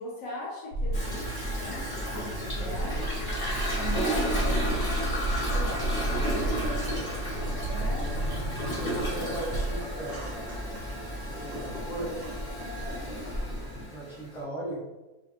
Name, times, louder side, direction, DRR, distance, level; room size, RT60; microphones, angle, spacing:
voice 1, 0.0-3.0 3.7-4.8 7.6-8.1 12.6-13.1, left 1 dB, 65° left, -7 dB, 1.1 m, -39 dB
sound 1, 0.7-10.1, right 1 dB, 90° right, 1.2 m, -32 dB
Toilet flush, 0.9-14.4, equal, 20° left, 0.7 m, -34 dB
Boiling, 1.1-13.8, equal, 40° right, 0.7 m, -40 dB
voice 2, 5.5-7.1 8.0-8.1 8.6-10.2 11.3-12.2 13.9-14.8, right 1 dB, ahead, -9 dB, 0.9 m, -38 dB
2.6 x 2.5 x 2.8 m, 1.1 s
omnidirectional pair, 1.6 m